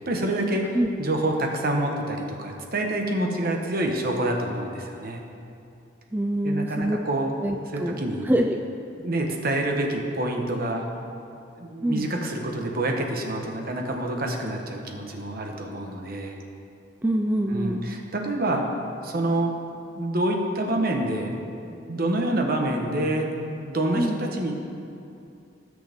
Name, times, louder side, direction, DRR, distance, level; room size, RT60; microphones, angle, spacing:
voice 1, 0.1-5.2 6.4-7.3 7.7-8.3 9.0-11.1 11.5-16.4 17.5-19.5 19.9-24.6, right 1 dB, 55° right, 2 dB, 1.2 m, -27 dB
voice 2, 6.1-7.0 7.4-7.9 8.3-8.6 11.8-12.0 17.0-17.8 24.0-24.2, right 1 dB, 10° right, 3 dB, 0.4 m, -24 dB
18.5 x 6.4 x 3.6 m, 2.6 s
head